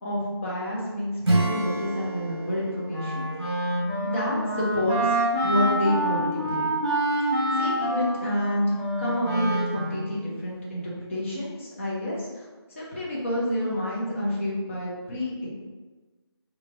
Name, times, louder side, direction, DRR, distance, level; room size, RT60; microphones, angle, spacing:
voice 1, 0.0-3.5 4.0-6.7 7.2-12.4 12.7-15.5, left 1 dB, 30° left, -7 dB, 0.9 m, -29 dB
Acoustic guitar / Strum, 1.2-5.5, right 2 dB, 60° right, 1.0 m, -30 dB
Wind instrument woodwind instrument, 2.9-10.2, right 1 dB, 10° right, 0.9 m, -27 dB
4.3 x 2.5 x 2.6 m, 1.3 s
figure-of-eight pair, 165°, 14 cm